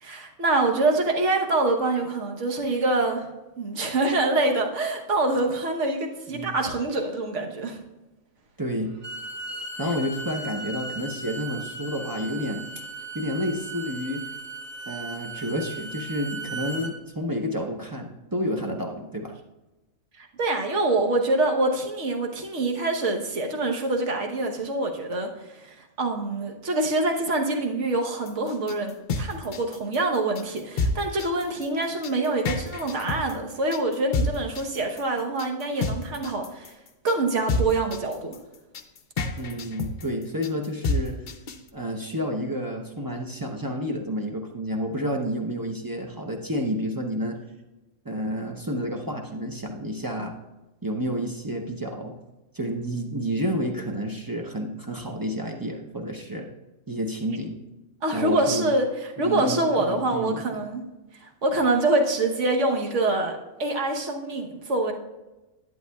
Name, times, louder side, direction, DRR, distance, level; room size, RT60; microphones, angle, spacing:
voice 1, 0.0-3.3 3.6-7.8 20.2-36.7 37.0-38.4 58.0-60.8 61.1-64.9, right 2 dB, 60° right, 2 dB, 1.3 m, -25 dB
voice 2, 8.6-8.9 9.8-12.7 13.1-14.2 14.9-19.3 39.4-41.1 41.7-47.4 48.0-50.3 50.8-52.1 52.5-56.5 56.9-57.6 58.1-58.7 59.2-60.6, equal, 20° right, 1 dB, 0.6 m, -30 dB
Bowed string instrument, 8.9-16.9, right 3 dB, 40° right, 1.8 m, -37 dB
sound 1, 28.3-41.7, left 2 dB, 55° left, 0.6 m, -29 dB
11.0 x 9.3 x 2.3 m, 1.1 s
omnidirectional pair, 1.4 m